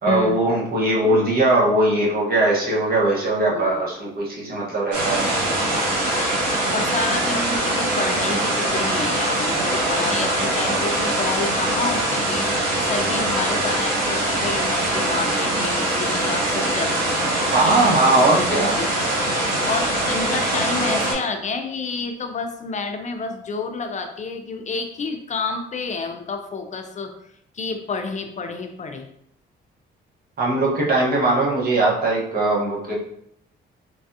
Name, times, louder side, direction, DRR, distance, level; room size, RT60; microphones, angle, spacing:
voice 1, 0.0-5.3 17.5-18.7 30.4-32.9, right 2 dB, 50° right, -4 dB, 1.1 m, -20 dB
voice 2, 3.5-3.8 5.5-5.9 6.7-17.7 18.6-18.9 19.6-27.1 27.5-29.1, left 4 dB, 40° left, 6 dB, 0.4 m, -29 dB
sound 1, 4.9-21.1, right 1 dB, 85° right, 1.1 m, -22 dB
3.3 x 2.3 x 2.7 m, 0.71 s
cardioid pair, 90°, 20 cm